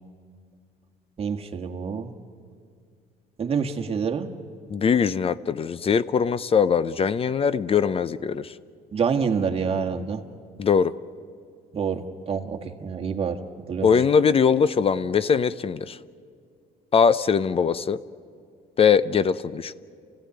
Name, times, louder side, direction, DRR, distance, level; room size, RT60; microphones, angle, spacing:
voice 1, 1.2-2.1 3.4-4.3 8.9-10.2 11.7-13.4 13.7-13.9, right 6 dB, 35° right, 4 dB, 1.7 m, -27 dB
voice 2, 4.7-8.5 10.6-10.9 13.8-16.0 16.9-18.0 18.8-19.7, left 6 dB, 35° left, 16 dB, 0.6 m, -21 dB
29.0 x 16.0 x 9.6 m, 2.2 s
cardioid pair, 110°, 17 cm